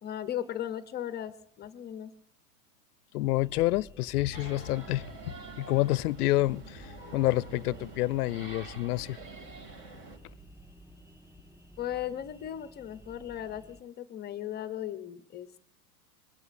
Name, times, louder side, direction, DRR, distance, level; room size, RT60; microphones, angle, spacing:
voice 1, 0.0-2.1 11.8-15.6, left 11 dB, 20° left, 0.7 m, -37 dB
voice 2, 3.1-9.2, left 17 dB, 70° left, 0.6 m, -28 dB
sound 1, 3.4-13.8, equal, 5° right, 4.8 m, -53 dB
sound 2, 4.3-10.2, right 3 dB, 40° right, 2.5 m, -46 dB
26.0 x 22.0 x 2.5 m
hypercardioid pair, 120°, 48 cm